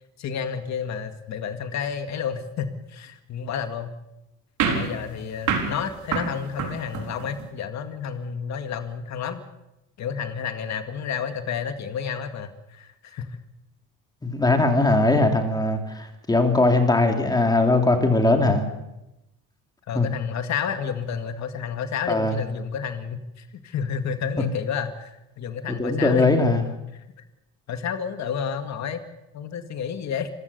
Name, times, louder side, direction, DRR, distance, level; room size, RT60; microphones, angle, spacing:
voice 1, 0.2-3.9 4.6-9.5 10.0-13.4 19.9-26.3 26.9-27.0 27.7-29.0 29.3-30.3, left 7 dB, 55° left, 8 dB, 2.0 m, -30 dB
sound 1, 4.6-7.5, right 6 dB, 60° right, 4.0 m, -28 dB
voice 2, 14.2-18.6 19.9-20.1 22.1-22.4 25.8-26.6, left 2 dB, 10° left, 5 dB, 2.7 m, -20 dB
26.5 x 16.0 x 6.9 m, 0.93 s
cardioid pair, 150°, 33 cm